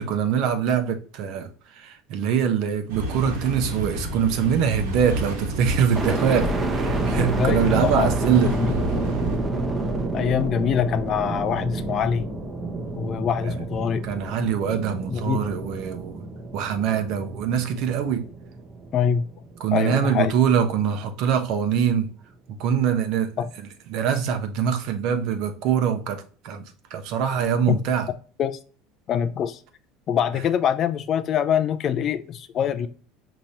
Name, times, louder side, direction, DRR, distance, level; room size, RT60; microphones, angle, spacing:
voice 1, 0.0-8.5 13.4-13.5 14.0-16.2 16.5-18.2 19.6-22.1 22.6-23.3 23.9-26.6 26.9-28.1, right 8 dB, 60° right, 0.8 m, -23 dB
sound 1, 2.9-9.4, right 2 dB, 90° right, 1.3 m, -30 dB
sound 2, 5.9-19.9 20.5-21.2, right 2 dB, 20° right, 0.8 m, -29 dB
voice 2, 7.1-8.1 8.4-8.8 10.1-12.2 13.0-14.0 15.1-15.4 18.9-19.2 19.7-20.3 23.4-23.5 27.7-27.8 28.4-28.6 29.1-29.6 30.1-32.9, left 8 dB, 45° left, 0.4 m, -24 dB
5.1 x 2.9 x 2.7 m
supercardioid pair, 115°, 0 cm